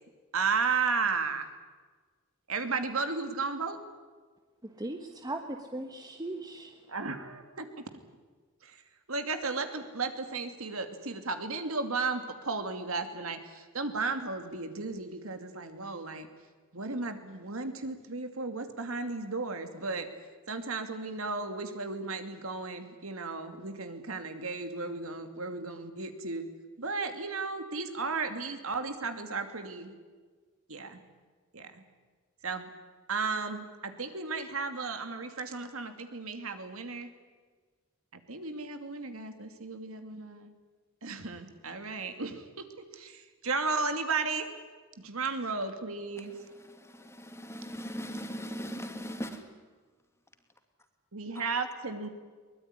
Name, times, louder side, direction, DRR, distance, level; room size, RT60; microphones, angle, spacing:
voice 1, 0.3-1.5 2.5-3.8 6.9-7.8 8.6-8.8 9.1-16.3 16.7-20.1 20.5-26.4 26.8-29.9 30.7-31.0 31.5-31.8 32.4-32.7 33.1-37.1 38.1-40.5 41.0-42.7 42.9-44.5 45.0-46.3 51.1-52.1, right 4 dB, 70° right, 7 dB, 2.7 m, -34 dB
voice 2, 4.6-6.9, right 1 dB, 20° right, 4 dB, 1.3 m, -38 dB
voice 3, 46.6-49.5 51.3-51.5, equal, 15° left, 6 dB, 2.6 m, -39 dB
23.0 x 20.5 x 9.9 m, 1.4 s
head